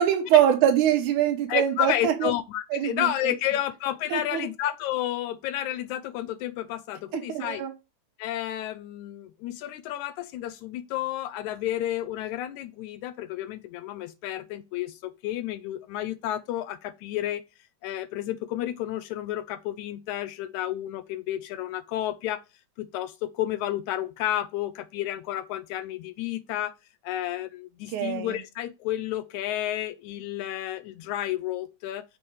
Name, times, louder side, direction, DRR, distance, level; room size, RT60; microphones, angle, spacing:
voice 1, 0.0-2.3 2.7-3.1 4.1-4.5 7.1-7.7 27.9-28.4, right 10 dB, 75° right, 2.4 m, -23 dB
voice 2, 1.5-7.7 8.2-17.4 17.8-22.4 22.8-26.7 27.0-32.0, left 13 dB, 80° left, 1.8 m, -31 dB
7.1 x 3.5 x 4.6 m
omnidirectional pair, 3.6 m